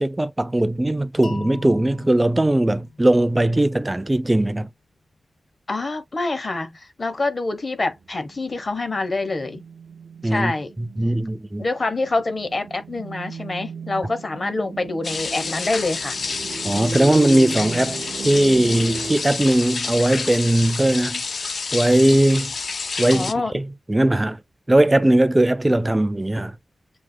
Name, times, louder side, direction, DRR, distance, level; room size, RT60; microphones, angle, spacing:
voice 1, 0.0-4.7 10.2-10.5 10.8-11.7 16.6-21.2 21.7-22.5 23.0-24.4 24.7-26.6, right 1 dB, 15° right, 0.4 m, -19 dB
sound 1, 1.2-4.1, left 4 dB, 90° left, 0.9 m, -40 dB
voice 2, 5.7-9.6 10.2-10.7 11.6-16.2 23.1-23.6, left 3 dB, 40° left, 0.9 m, -26 dB
sound 2, 8.0-19.2, right 4 dB, 80° right, 0.5 m, -36 dB
sound 3, 15.0-23.3, left 4 dB, 65° left, 0.4 m, -29 dB
7.3 x 2.8 x 2.2 m
wide cardioid pair, 125°, 0 cm